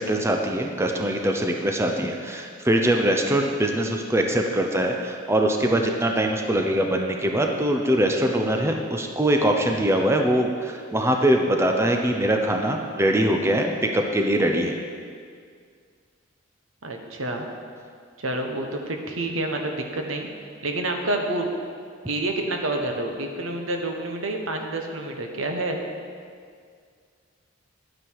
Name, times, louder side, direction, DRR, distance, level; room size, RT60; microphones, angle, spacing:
voice 1, 0.0-14.8, right 1 dB, 15° right, 3 dB, 0.6 m, -22 dB
voice 2, 16.8-17.5 18.2-21.5 22.1-25.8, right 2 dB, 85° right, 3 dB, 1.3 m, -28 dB
12.0 x 9.1 x 4.8 m, 2.1 s
head